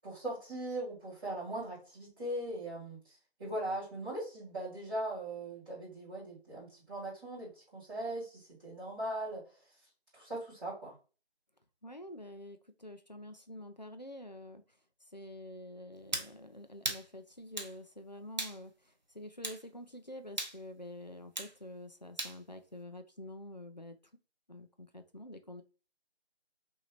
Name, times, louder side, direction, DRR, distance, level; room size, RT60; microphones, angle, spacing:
voice 1, 0.0-9.4 10.1-10.9, right 1 dB, 5° right, -21 dB, 2.3 m, -40 dB
voice 2, 11.8-14.6 15.1-24.0 24.5-25.6, left 1 dB, 40° left, 7 dB, 0.6 m, -48 dB
sound 1, 16.1-16.3 16.8-17.1 17.6-17.7 18.4-18.6 19.4-19.6 20.4-20.6 21.4-21.5 22.2-22.4, right 1 dB, 45° right, 0.7 m, -37 dB
6.1 x 2.8 x 2.5 m, 0.34 s
figure-of-eight pair, 175°, 32 cm